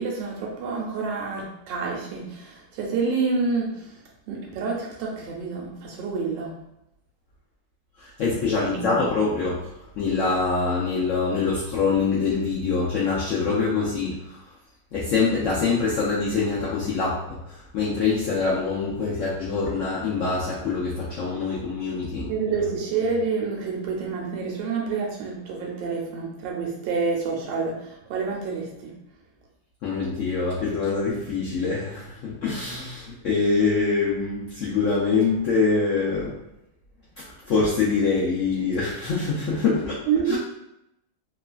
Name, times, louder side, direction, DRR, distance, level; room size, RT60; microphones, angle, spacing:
voice 1, 0.0-3.9 4.3-6.5 8.6-9.0 22.3-28.9 40.1-40.4, right 5 dB, 85° right, -1 dB, 1.3 m, -28 dB
voice 2, 8.0-9.7 10.0-14.4 14.9-22.3 29.8-36.3 37.5-40.0 40.3-40.4, left 4 dB, 85° left, -6 dB, 0.6 m, -24 dB
3.1 x 2.3 x 2.2 m, 0.84 s
omnidirectional pair, 1.9 m